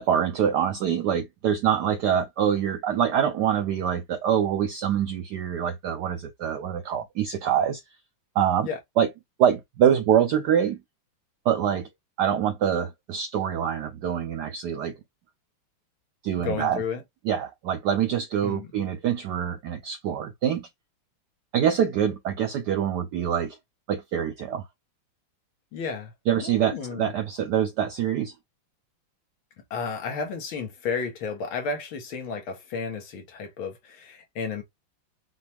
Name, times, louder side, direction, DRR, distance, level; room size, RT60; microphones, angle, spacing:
voice 1, 0.0-7.8 8.3-8.7 9.0-9.1 9.4-10.8 11.5-11.9 12.2-14.9 16.2-16.8 17.2-20.7 21.5-23.6 23.9-24.6 26.3-28.3, right 9 dB, 75° right, 0.9 m, -25 dB
voice 2, 16.4-17.0 18.4-18.7 25.7-27.1 29.7-34.6, left 5 dB, 70° left, 1.9 m, -32 dB
5.9 x 2.3 x 3.4 m
omnidirectional pair, 2.4 m